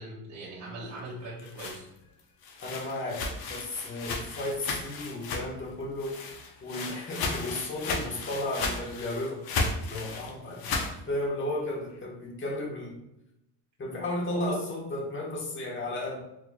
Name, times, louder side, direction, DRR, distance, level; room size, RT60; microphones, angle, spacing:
voice 1, 0.0-1.8 14.3-14.6, right 2 dB, 40° right, -7 dB, 1.1 m, -40 dB
sound 1, 1.2-5.7 6.0-11.0, left 3 dB, 50° left, 0.8 m, -34 dB
voice 2, 2.6-6.2 6.6-9.5 9.9-13.0 13.8-16.2, left 1 dB, 25° left, -1 dB, 1.1 m, -34 dB
4.2 x 3.1 x 2.2 m, 0.84 s
cardioid pair, 105°, 45 cm